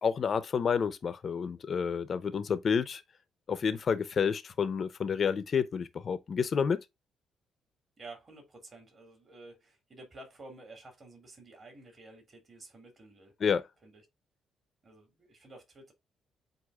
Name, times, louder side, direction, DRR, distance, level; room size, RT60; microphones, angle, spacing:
voice 1, 0.0-3.0 3.5-6.8 13.4-13.6, left 6 dB, 50° left, 0.7 m, -29 dB
voice 2, 8.0-13.3 13.8-14.0 14.8-15.9, right 2 dB, 35° right, 2.7 m, -51 dB
7.9 x 2.7 x 2.4 m
cardioid pair, 90°, 0 cm